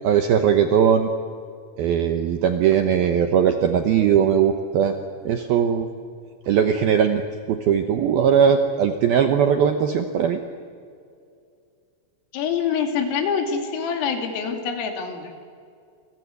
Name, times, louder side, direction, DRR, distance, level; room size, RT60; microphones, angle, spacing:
voice 1, 0.0-1.1 1.8-5.0 5.2-5.9 6.5-7.2 7.5-10.4, right 8 dB, 75° right, 6 dB, 2.2 m, -19 dB
voice 2, 12.3-15.3, left 6 dB, 80° left, 5 dB, 5.3 m, -25 dB
29.0 x 24.0 x 8.1 m, 2.4 s
omnidirectional pair, 5.8 m